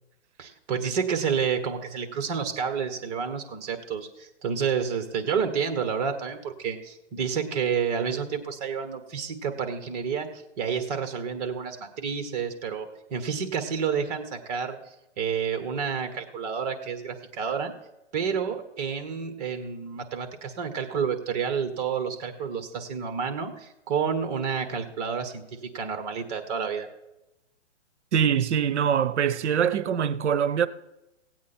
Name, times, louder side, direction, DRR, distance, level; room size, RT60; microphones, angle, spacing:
voice 1, 0.4-14.8 15.2-17.7 18.1-25.4 25.7-26.9, right 6 dB, 35° right, 1.4 m, -29 dB
voice 2, 28.1-30.7, right 8 dB, 70° right, 0.7 m, -23 dB
16.5 x 8.6 x 4.3 m
hypercardioid pair, 150°, 36 cm